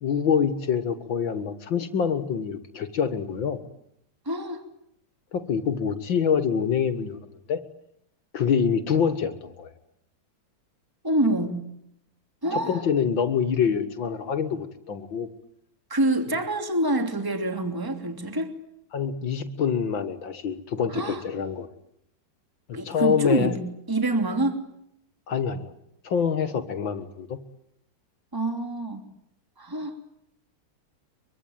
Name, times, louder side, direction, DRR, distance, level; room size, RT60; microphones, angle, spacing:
voice 1, 0.0-3.6 5.3-7.6 8.3-9.7 12.5-15.3 18.9-21.7 22.7-23.6 25.3-25.7 26.0-27.4, left 7 dB, 75° left, 10 dB, 2.4 m, -26 dB
voice 2, 4.2-4.6 11.0-11.6 12.4-12.8 15.9-18.5 20.9-21.2 22.7-23.6 23.9-24.7 28.3-29.0 29.6-30.0, right 1 dB, 10° right, 6 dB, 2.9 m, -26 dB
24.5 x 24.0 x 9.2 m, 0.75 s
omnidirectional pair, 2.1 m